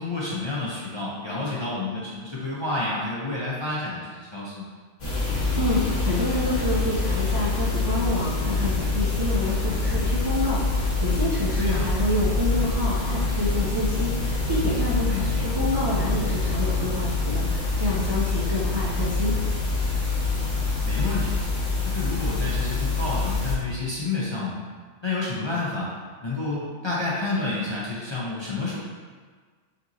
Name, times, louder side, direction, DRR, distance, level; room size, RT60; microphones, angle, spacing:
voice 1, 0.0-4.7 11.6-11.9 15.1-15.5 20.9-21.4 21.8-24.6 25.0-25.9 26.2-28.8, left 3 dB, 35° left, -7 dB, 0.5 m, -29 dB
sound 1, 5.0-23.6, left 3 dB, 50° left, 1.1 m, -25 dB
voice 2, 5.6-15.1 15.4-19.3, left 1 dB, 30° right, -8 dB, 0.5 m, -28 dB
5.2 x 2.8 x 2.7 m, 1.5 s
omnidirectional pair, 1.1 m